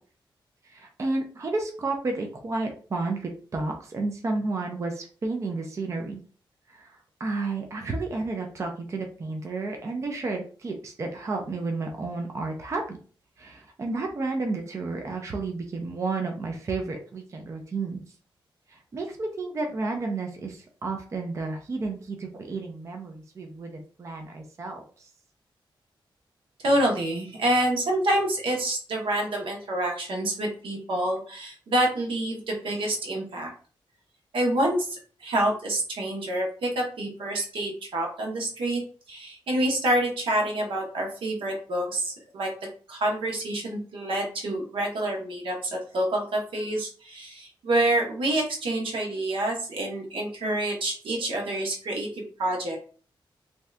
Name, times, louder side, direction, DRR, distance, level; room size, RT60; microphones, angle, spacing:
voice 1, 0.6-6.2 6.7-13.0 13.4-18.0 18.7-25.1, right 3 dB, 35° right, 3 dB, 0.4 m, -32 dB
voice 2, 26.6-33.5 34.3-38.8 39.1-42.5 42.9-52.8, right 1 dB, 80° right, 0 dB, 1.0 m, -27 dB
2.6 x 2.3 x 3.2 m, 0.41 s
wide cardioid pair, 145°, 9 cm